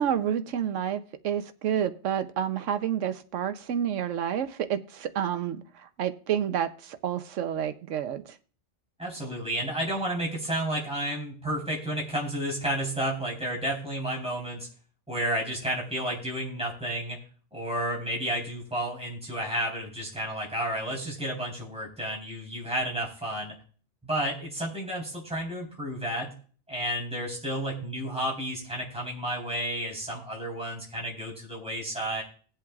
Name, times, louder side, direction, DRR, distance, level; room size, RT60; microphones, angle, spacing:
voice 1, 0.0-8.4, right 9 dB, 80° right, 10 dB, 1.1 m, -29 dB
voice 2, 9.0-14.7 15.1-17.2 17.5-23.6 24.0-26.3 26.7-32.2, right 1 dB, 5° right, -3 dB, 3.8 m, -31 dB
20.0 x 7.8 x 2.4 m, 0.43 s
omnidirectional pair, 1.2 m